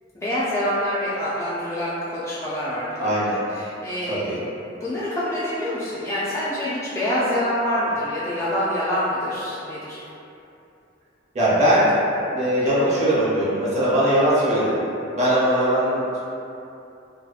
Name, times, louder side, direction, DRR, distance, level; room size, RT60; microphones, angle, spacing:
voice 1, 0.1-3.1 3.6-4.5 4.8-10.0, equal, 15° left, -11 dB, 0.3 m, -26 dB
voice 2, 3.0-3.4 4.1-4.4 11.3-11.9 12.3-14.8 15.1-16.2, equal, 35° right, -10 dB, 0.7 m, -20 dB
2.6 x 2.3 x 2.4 m, 2.8 s
head